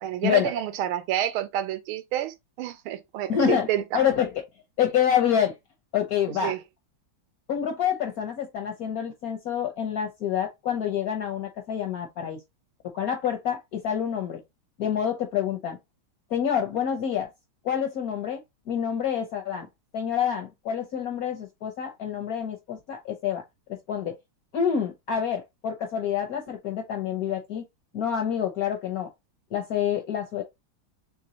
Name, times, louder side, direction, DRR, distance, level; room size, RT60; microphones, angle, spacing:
voice 1, 0.0-4.0 6.4-6.6, right 11 dB, 90° right, 1.5 m, -29 dB
voice 2, 3.3-3.7 3.9-4.4 4.8-5.6 5.9-6.6 7.5-12.4 12.9-14.4 14.8-15.8 16.3-17.3 17.6-18.4 18.7-19.7 19.9-23.4 23.9-24.1 24.5-27.6 27.9-29.1 29.5-30.4, left 8 dB, 65° left, 0.9 m, -27 dB
3.9 x 3.3 x 2.8 m
omnidirectional pair, 2.3 m